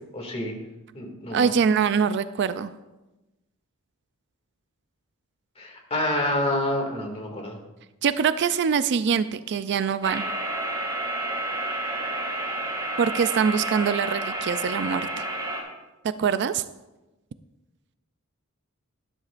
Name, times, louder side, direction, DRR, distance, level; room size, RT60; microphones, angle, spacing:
voice 1, 0.1-0.6 0.9-1.5 5.6-7.6, left 1 dB, 30° left, 1 dB, 2.2 m, -28 dB
voice 2, 1.3-2.7 8.0-10.3 13.0-15.2 16.2-16.6, right 6 dB, 55° right, 13 dB, 0.4 m, -23 dB
sound 1, 10.0-15.6, right 1 dB, 20° right, 2.1 m, -30 dB
12.5 x 12.5 x 2.5 m, 1.1 s
head